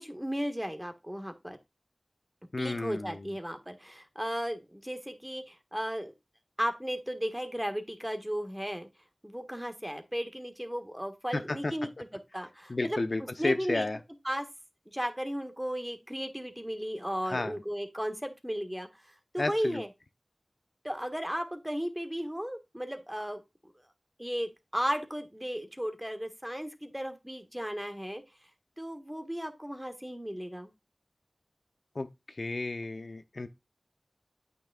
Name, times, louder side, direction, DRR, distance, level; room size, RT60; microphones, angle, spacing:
voice 1, 0.0-1.6 2.6-6.1 6.6-8.9 9.2-11.9 12.3-13.0 13.4-13.9 14.2-14.5 14.9-19.9 20.8-23.4 24.2-28.2 28.8-30.7, equal, 10° right, 1.5 m, -35 dB
voice 2, 2.5-3.3 11.3-11.7 12.7-14.0 17.3-17.6 19.4-19.8 31.9-33.5, left 2 dB, 70° left, 0.7 m, -32 dB
8.9 x 6.2 x 2.4 m
wide cardioid pair, 40°, 0 cm